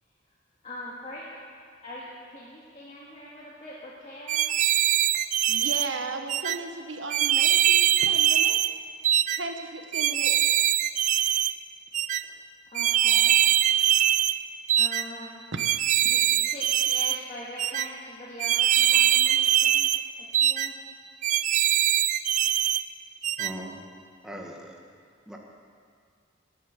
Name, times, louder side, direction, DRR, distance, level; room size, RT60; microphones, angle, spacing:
voice 1, 0.6-1.3 1.8-4.5 9.3-9.4 12.7-13.4 13.7-13.9 14.8-15.4 16.0-19.9 20.2-20.7, left 1 dB, 35° left, -7 dB, 2.1 m, -42 dB
sound 1, 4.3-5.9 6.3-6.6 7.1-8.7 9.0-9.4 9.9-11.5 11.9-12.2 12.7-14.4 14.7-15.0 15.6-17.2 17.6-17.9 18.4-20.0 20.3-20.7 21.2-22.8 23.2-23.5, right 11 dB, 40° right, 0.3 m, -22 dB
voice 2, 5.5-8.6 9.3-10.4, right 3 dB, 75° right, 6 dB, 1.1 m, -36 dB
voice 3, 23.4-23.8 24.2-24.7 25.3-25.4, equal, 5° right, -1 dB, 1.4 m, -39 dB
19.5 x 8.7 x 6.7 m, 2.2 s
head